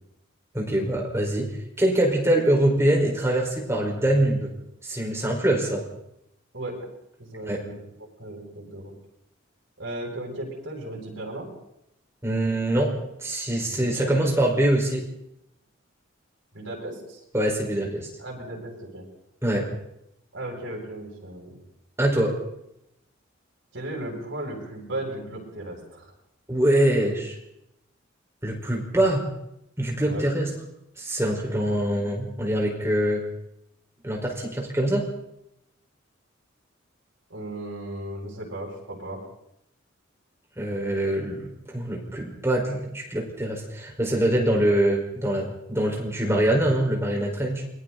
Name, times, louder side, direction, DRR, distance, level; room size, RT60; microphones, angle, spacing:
voice 1, 0.5-4.5 4.8-5.8 7.4-7.6 12.2-15.0 17.3-18.1 19.4-19.7 22.0-22.4 26.5-27.3 28.4-29.3 29.8-30.5 31.0-33.2 34.0-35.1 40.6-47.6, right 1 dB, 15° right, -1 dB, 5.1 m, -24 dB
voice 2, 7.2-8.9 9.8-11.5 13.6-14.3 16.5-17.2 18.2-19.0 20.3-21.6 23.7-26.1 30.0-30.2 37.3-39.2, right 1 dB, 65° right, -1 dB, 7.7 m, -36 dB
28.5 x 22.0 x 4.2 m, 0.80 s
head